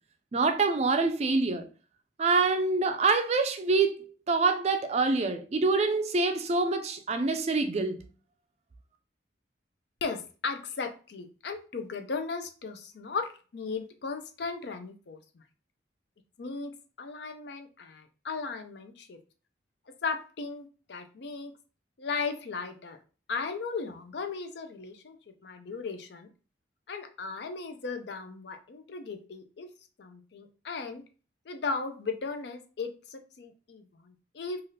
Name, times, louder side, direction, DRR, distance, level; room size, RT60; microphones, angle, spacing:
voice 1, 0.3-1.7 2.2-8.0, right 3 dB, 35° right, 0.3 m, -26 dB
voice 2, 10.0-15.4 16.4-16.7 17.0-19.2 20.0-21.5 22.0-23.0 23.3-25.2 25.4-26.3 26.9-29.7 30.0-31.0 31.5-34.6, left 4 dB, 65° left, 0.5 m, -36 dB
3.3 x 2.4 x 2.7 m
head